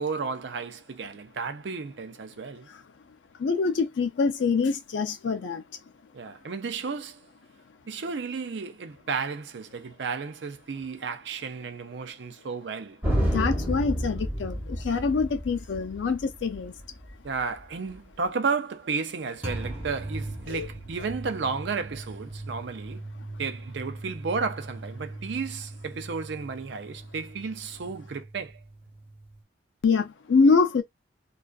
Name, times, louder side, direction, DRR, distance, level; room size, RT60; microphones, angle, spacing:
voice 1, 0.0-2.7 6.1-7.3 7.9-13.0 17.2-23.0 23.4-28.6, right 5 dB, 70° right, 0.5 m, -33 dB
voice 2, 3.4-5.6 13.2-16.7 20.5-20.7 29.8-30.8, left 4 dB, 75° left, 0.4 m, -25 dB
sound 1, 13.0-18.1 19.4-29.4, right 1 dB, 10° right, 0.8 m, -35 dB
2.4 x 2.3 x 2.3 m
head